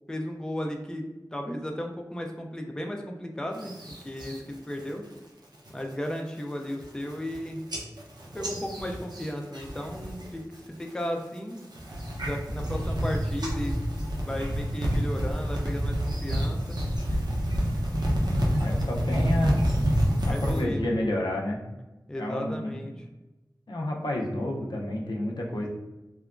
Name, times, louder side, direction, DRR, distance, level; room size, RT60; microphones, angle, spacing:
voice 1, 0.1-1.1 1.3-5.1 5.7-7.6 8.3-11.6 12.2-13.8 14.3-16.8 20.3-21.0 22.1-23.0, equal, 10° left, 2 dB, 0.3 m, -35 dB
sound 1, 3.6-4.4 4.8-5.2 5.5-5.9 6.4-6.5 6.7-7.4 7.7-10.3 10.5-11.0 11.6-20.6, equal, 70° right, 0.6 m, -28 dB
voice 2, 18.6-19.6 20.3-21.6 22.2-22.8 23.7-25.7, left 1 dB, 80° left, -1 dB, 0.5 m, -30 dB
2.9 x 2.2 x 2.4 m, 1.1 s
wide cardioid pair, 60°, 7 cm